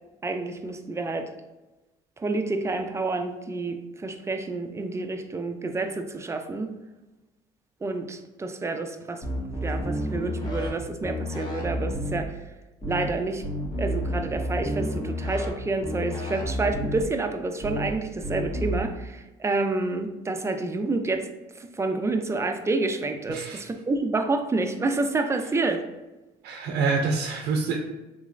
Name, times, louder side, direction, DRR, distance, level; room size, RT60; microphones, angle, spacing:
voice 1, 0.2-1.3 2.2-6.7 7.8-9.2 9.6-12.4 12.9-13.4 13.8-21.3 21.6-25.8, right 3 dB, 15° right, 6 dB, 0.3 m, -28 dB
sound 1, 9.2-10.7 11.0-12.2 12.8-13.1 13.4-15.5 15.8-17.0 17.6-17.9 18.2-18.8, equal, 25° left, 1.0 m, -30 dB
voice 2, 23.3-23.6 26.4-27.8, right 4 dB, 75° right, 1 dB, 0.5 m, -26 dB
3.8 x 3.0 x 2.5 m, 1.1 s
cardioid pair, 110°, 17 cm